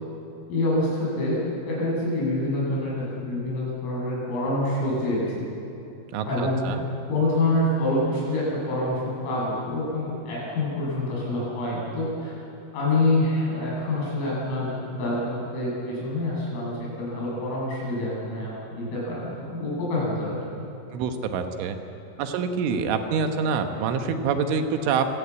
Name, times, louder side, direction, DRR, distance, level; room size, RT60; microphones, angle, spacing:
voice 1, 0.5-1.4 1.7-2.9 3.2-5.5 6.2-6.8 7.1-12.4 12.7-20.4, left 1 dB, 85° left, -5 dB, 10.5 m, -26 dB
voice 2, 6.1-6.9 20.9-21.8 22.2-25.0, right 5 dB, 75° right, 6 dB, 3.6 m, -26 dB
26.0 x 17.5 x 8.3 m, 2.7 s
omnidirectional pair, 5.9 m